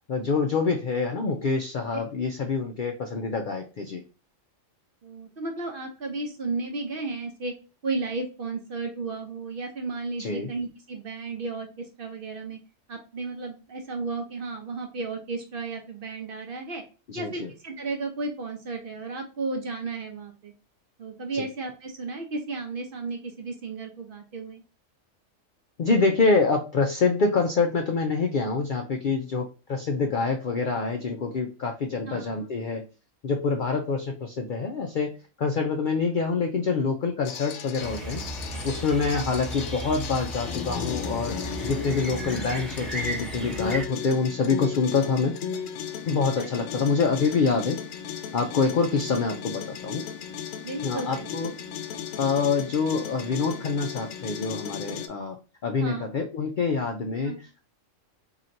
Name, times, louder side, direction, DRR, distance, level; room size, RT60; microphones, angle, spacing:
voice 1, 0.1-4.0 10.2-10.5 17.1-17.5 21.3-21.5 25.8-32.8 33.2-38.2 38.6-45.4 46.1-47.8 48.3-50.1 50.8-51.5 52.2-57.6, left 4 dB, 65° left, 3 dB, 0.5 m, -26 dB
voice 2, 5.0-7.5 7.8-12.6 12.9-16.8 17.1-20.5 21.0-24.6 32.1-32.3 39.1-39.2 46.4-46.7 50.6-51.3 55.7-56.0 57.2-57.4, right 3 dB, 55° right, 3 dB, 0.7 m, -33 dB
sound 1, 37.2-55.1, left 8 dB, 85° left, 1.0 m, -36 dB
sound 2, 37.8-43.8, right 2 dB, ahead, 0.5 m, -35 dB
4.2 x 2.9 x 2.5 m, 0.33 s
omnidirectional pair, 1.4 m